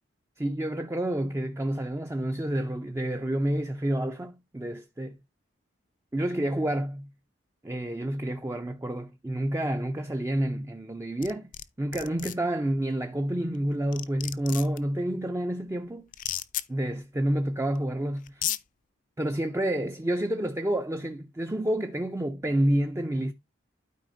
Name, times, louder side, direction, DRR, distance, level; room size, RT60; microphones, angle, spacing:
voice 1, 0.4-5.2 6.1-7.1 7.6-11.5 11.8-16.1 16.7-18.5 19.2-23.3, right 1 dB, 15° right, 0.4 m, -29 dB
sound 1, 11.2-11.6 11.9-12.3 13.5-13.6 13.9-14.8 16.1-16.6 17.8-17.9 18.3-18.6, left 13 dB, 40° left, 0.4 m, -32 dB
12.0 x 4.9 x 2.5 m
head